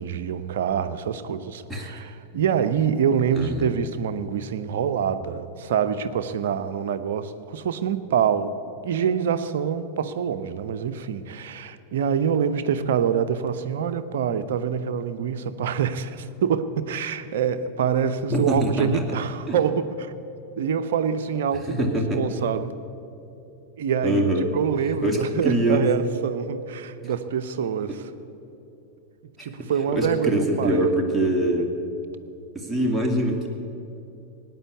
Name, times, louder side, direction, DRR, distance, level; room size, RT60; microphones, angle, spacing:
voice 1, 0.0-20.1 20.6-22.8 23.8-28.0 29.4-30.9, right 7 dB, 55° right, 10 dB, 0.8 m, -26 dB
voice 2, 1.7-2.0 3.3-3.7 18.3-19.0 19.5-19.6 21.7-22.2 24.0-24.5 25.0-25.9 29.4-29.5 29.9-31.7 32.5-33.5, right 1 dB, ahead, -2 dB, 2.4 m, -23 dB
18.0 x 9.3 x 8.3 m, 2.8 s
figure-of-eight pair, 90°, 0 cm